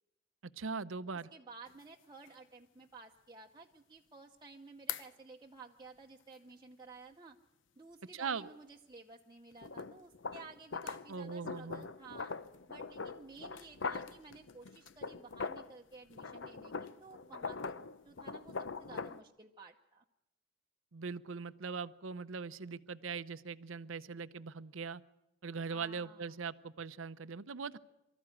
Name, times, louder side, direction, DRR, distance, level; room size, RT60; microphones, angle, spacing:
voice 1, 0.6-1.3 8.1-8.5 11.1-11.8 20.9-25.0 25.4-27.8, right 5 dB, 90° right, 14 dB, 0.7 m, -41 dB
voice 2, 1.3-7.4 7.8-12.4 12.7-17.8 18.0-20.0 25.7-26.3, right 3 dB, 20° right, 0 dB, 0.8 m, -54 dB
sound 1, 1.7-1.8 2.3-2.4 4.9-5.1 9.6-15.8 16.1-19.2, left 5 dB, 70° left, 0.8 m, -42 dB
24.0 x 14.0 x 9.9 m, 0.91 s
head